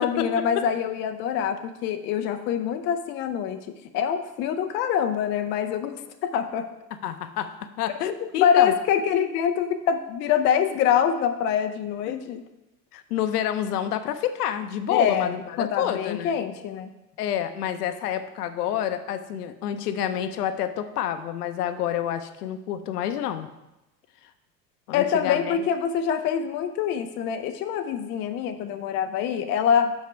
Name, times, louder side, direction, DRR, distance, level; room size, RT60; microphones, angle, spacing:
voice 1, 0.0-3.7 3.9-6.7 8.2-12.4 14.9-16.9 24.9-29.9, left 8 dB, 25° left, 8 dB, 0.4 m, -25 dB
voice 2, 7.0-8.7 12.9-16.4 17.2-23.5 24.9-25.6, left 10 dB, 65° left, 10 dB, 0.7 m, -28 dB
6.4 x 5.3 x 4.5 m, 0.96 s
figure-of-eight pair, 75°, 49 cm